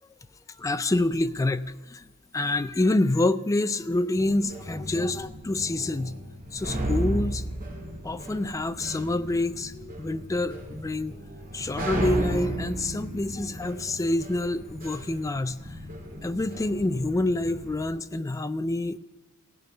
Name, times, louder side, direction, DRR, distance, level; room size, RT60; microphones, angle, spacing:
voice 1, 0.6-2.1 2.3-6.1 6.5-7.4 8.0-11.1 11.5-15.8 16.2-19.0, left 2 dB, 15° left, 13 dB, 0.3 m, -27 dB
sound 1, 4.2-17.9, right 1 dB, 40° right, 1.7 m, -35 dB
16.0 x 5.4 x 9.9 m, 1.2 s
head